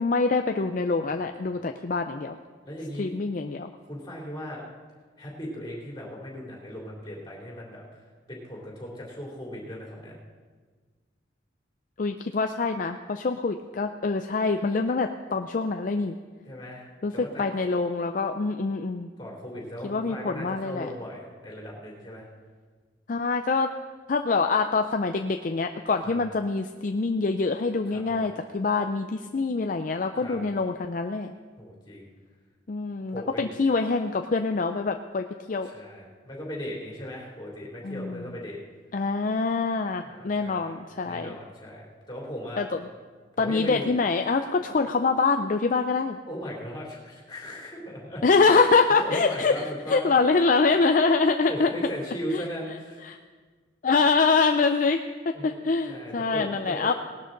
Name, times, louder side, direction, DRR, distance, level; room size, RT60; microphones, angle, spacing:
voice 1, 0.0-2.4 3.0-3.7 12.0-16.1 17.0-19.1 19.8-20.9 23.1-23.7 24.1-31.3 32.7-35.7 37.8-38.4 38.9-41.4 42.6-42.7 43.4-46.2 48.2-51.7 52.3-52.4 53.0-53.2 53.8-56.9, left 4 dB, 40° left, 6 dB, 0.4 m, -25 dB
voice 2, 2.6-3.1 3.9-4.6 5.2-7.8 8.3-10.2 16.5-16.9 17.1-17.4 19.2-22.3 26.0-26.2 27.9-28.2 30.2-30.4 31.6-32.1 33.1-33.4 35.6-38.6 40.0-40.8 41.0-42.6 43.4-44.0 44.6-44.7 46.3-48.2 49.0-50.1 51.5-53.1 55.3-55.6 55.9-56.9, equal, 20° left, -3 dB, 3.0 m, -37 dB
19.0 x 12.0 x 3.9 m, 1.5 s
head